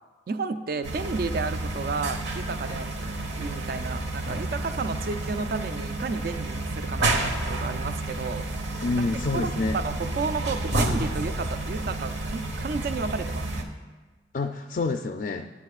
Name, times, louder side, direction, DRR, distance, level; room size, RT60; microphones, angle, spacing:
voice 1, 0.3-8.7 9.3-13.7, right 4 dB, 55° right, 10 dB, 0.4 m, -32 dB
sound 1, 0.8-13.6, right 2 dB, 85° right, 1.1 m, -30 dB
voice 2, 8.8-9.8 14.3-15.5, left 3 dB, 50° left, 6 dB, 0.4 m, -27 dB
16.0 x 9.8 x 2.4 m, 1.3 s
head